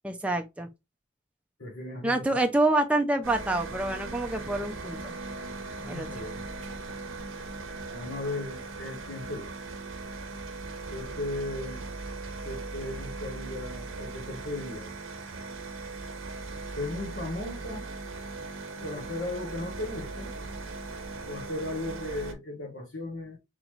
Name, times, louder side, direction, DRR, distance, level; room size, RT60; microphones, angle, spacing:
voice 1, 0.0-0.7 2.0-5.1 5.8-6.1, right 2 dB, 5° right, 0.4 m, -27 dB
voice 2, 1.6-2.3 5.8-6.6 7.9-9.5 10.9-11.8 12.4-14.9 16.8-17.9 18.8-20.3 21.3-23.4, left 2 dB, 65° left, 1.1 m, -36 dB
sound 1, 3.2-22.3, right 3 dB, 80° right, 0.8 m, -39 dB
3.8 x 3.0 x 3.0 m
head